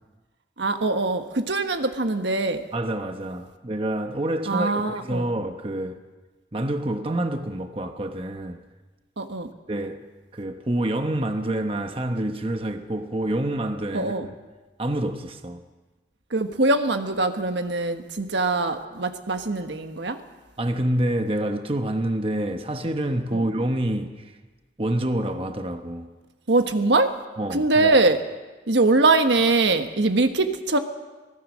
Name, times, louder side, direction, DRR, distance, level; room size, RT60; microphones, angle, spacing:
voice 1, 0.6-2.6 4.5-5.3 9.2-9.5 13.9-14.3 16.3-20.2 23.3-23.4 26.5-27.1 27.5-28.2 28.7-30.8, right 2 dB, 80° right, 1.4 m, -22 dB
voice 2, 2.7-6.0 6.5-8.6 9.7-10.1 10.3-14.3 14.8-15.6 20.6-24.4 24.8-26.1 27.4-27.9, right 1 dB, 30° right, 1.1 m, -27 dB
25.0 x 17.5 x 6.3 m
head